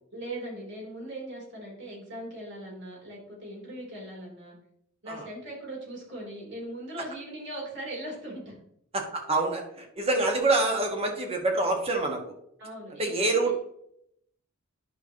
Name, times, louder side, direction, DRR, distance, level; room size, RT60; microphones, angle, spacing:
voice 1, 0.1-4.6 5.0-8.6 10.5-10.8 12.6-13.6, right 1 dB, 60° right, -3 dB, 3.5 m, -40 dB
voice 2, 8.9-12.2 13.0-13.5, right 2 dB, 30° right, 2 dB, 1.6 m, -26 dB
10.5 x 6.0 x 3.0 m, 0.73 s
head